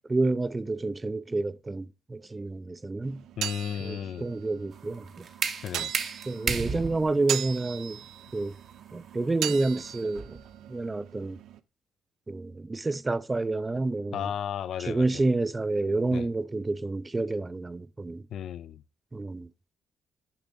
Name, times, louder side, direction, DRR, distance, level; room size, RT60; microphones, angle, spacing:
voice 1, 0.1-3.2 3.8-5.3 5.8-5.9 6.3-8.0 8.3-8.5 8.9-10.4 10.7-11.4 12.3-14.3 14.8-18.2 19.1-19.5, right 2 dB, 20° right, 0.3 m, -29 dB
sound 1, 3.0-11.6, right 11 dB, 85° right, 0.4 m, -39 dB
voice 2, 3.4-4.3 5.6-5.9 14.1-15.2 16.1-16.3 18.3-18.8, left 9 dB, 70° left, 0.3 m, -34 dB
sound 2, 4.7-10.5, right 5 dB, 55° right, 0.8 m, -35 dB
6.8 x 5.0 x 3.9 m
cardioid pair, 90°, 0 cm